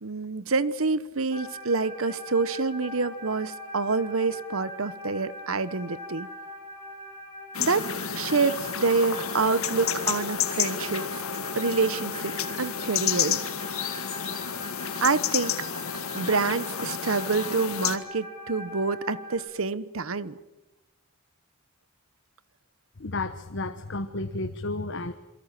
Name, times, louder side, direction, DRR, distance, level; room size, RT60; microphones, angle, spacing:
voice 1, 0.0-6.3 7.6-11.1 11.5-13.4 15.0-15.6 16.1-20.4, right 4 dB, 75° right, 16 dB, 1.1 m, -27 dB
sound 1, 1.3-19.4, left 1 dB, 20° left, 6.9 m, -42 dB
sound 2, 7.5-18.0, left 8 dB, 85° left, 1.9 m, -31 dB
voice 2, 23.0-25.1, left 2 dB, 60° left, 7 dB, 1.2 m, -32 dB
28.5 x 23.0 x 7.6 m, 1.0 s
head